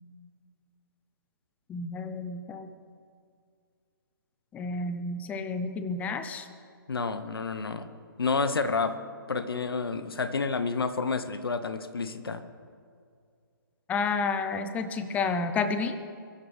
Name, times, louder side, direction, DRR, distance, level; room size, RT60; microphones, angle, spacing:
voice 1, 1.7-2.7 4.5-6.5 13.9-16.0, left 4 dB, 10° left, 10 dB, 0.8 m, -30 dB
voice 2, 6.9-7.9 8.2-9.0 9.3-12.4, left 4 dB, 85° left, 11 dB, 1.1 m, -29 dB
23.0 x 12.5 x 3.5 m, 2.2 s
hypercardioid pair, 145°, 12 cm